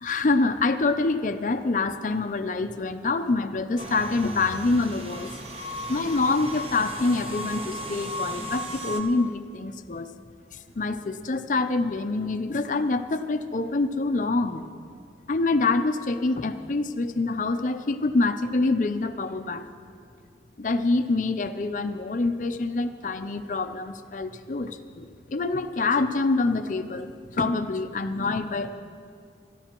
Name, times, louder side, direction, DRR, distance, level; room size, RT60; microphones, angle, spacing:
voice 1, 0.0-5.4 5.9-10.1 10.5-14.6 15.3-19.7 20.6-28.7, left 3 dB, 45° left, 9 dB, 0.5 m, -26 dB
sound 1, 3.8-9.0, equal, 30° right, 0.9 m, -35 dB
21.5 x 13.5 x 3.0 m, 2.3 s
head